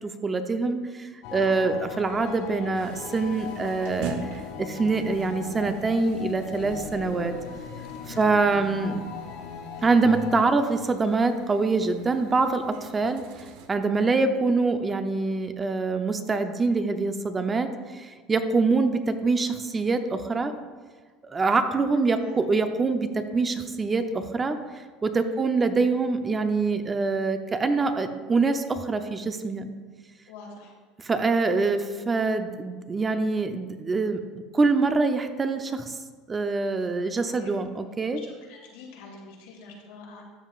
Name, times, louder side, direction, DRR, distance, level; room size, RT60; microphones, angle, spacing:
voice 1, 0.2-7.3 8.1-9.0 9.8-13.2 13.7-20.5 21.2-23.1 23.3-24.6 25.0-29.7 31.0-34.2 34.5-36.0 36.3-38.2, right 3 dB, 20° right, 7 dB, 0.6 m, -25 dB
sound 1, 1.2-10.5, left 7 dB, 70° left, 0.7 m, -38 dB
voice 2, 1.3-1.6 8.0-8.4 14.0-14.1 22.1-22.4 25.2-25.5 30.3-30.7 37.4-37.5 38.2-40.2, left 4 dB, 85° left, -2 dB, 2.5 m, -46 dB
sound 2, 2.7-13.7, right 5 dB, 75° right, 0.9 m, -43 dB
13.0 x 7.3 x 2.5 m, 1.4 s
supercardioid pair, 115°, 0 cm